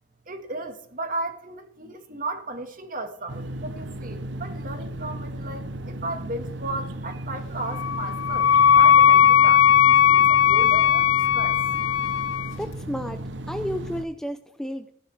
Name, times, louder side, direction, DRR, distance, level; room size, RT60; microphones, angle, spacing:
voice 1, 0.3-11.6, right 2 dB, 45° right, 1.7 m, -35 dB
sound 1, 3.3-14.0, right 1 dB, 65° right, 0.8 m, -35 dB
Wind instrument woodwind instrument, 7.7-12.5, left 9 dB, 80° left, 0.4 m, -17 dB
voice 2, 12.6-14.9, equal, 5° left, 0.5 m, -32 dB
15.0 x 10.5 x 3.4 m
head